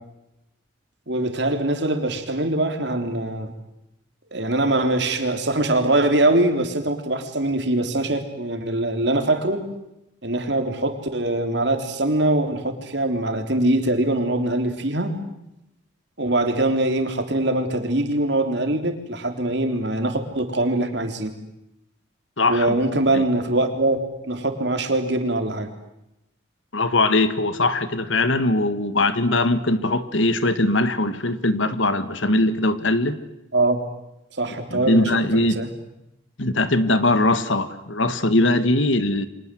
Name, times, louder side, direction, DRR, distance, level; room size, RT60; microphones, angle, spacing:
voice 1, 1.1-3.5 4.3-9.7 10.2-15.2 16.2-21.3 22.5-25.7 33.5-33.9 34.3-35.7, right 1 dB, 60° right, 6 dB, 3.7 m, -23 dB
voice 2, 22.4-22.7 23.1-23.2 26.7-33.2 34.7-35.6 36.4-39.3, left 2 dB, 80° left, 12 dB, 1.9 m, -21 dB
30.0 x 25.0 x 7.8 m, 0.88 s
head